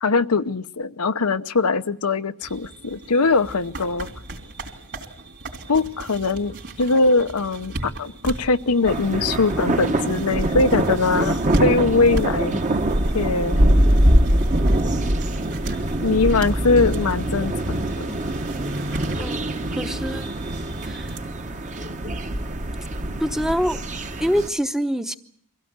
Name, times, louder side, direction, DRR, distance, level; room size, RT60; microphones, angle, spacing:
voice 1, 0.0-4.1 5.7-12.6 13.1-13.6 16.0-18.1, left 3 dB, 85° left, 10 dB, 0.9 m, -21 dB
sound 1, 2.4-21.2, right 1 dB, 50° right, 3.6 m, -36 dB
sound 2, 8.9-24.5, right 1 dB, 35° right, 1.2 m, -23 dB
voice 2, 19.8-20.3 20.8-21.1 23.2-23.8 24.2-25.1, equal, ahead, 8 dB, 0.9 m, -24 dB
24.5 x 16.5 x 8.8 m, 0.63 s
head